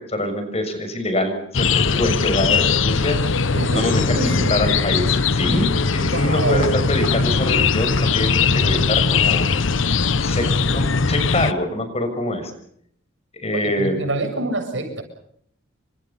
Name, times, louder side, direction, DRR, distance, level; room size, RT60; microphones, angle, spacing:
voice 1, 0.0-3.2 3.7-9.4 10.2-12.5 13.3-14.1, left 1 dB, 30° left, 6.5 m, -25 dB
sound 1, 1.5-11.5, left 5 dB, 75° left, 1.0 m, -20 dB
voice 2, 3.5-4.6 6.1-6.7 13.5-15.0, right 1 dB, 70° right, 7.6 m, -25 dB
29.5 x 26.0 x 5.7 m
head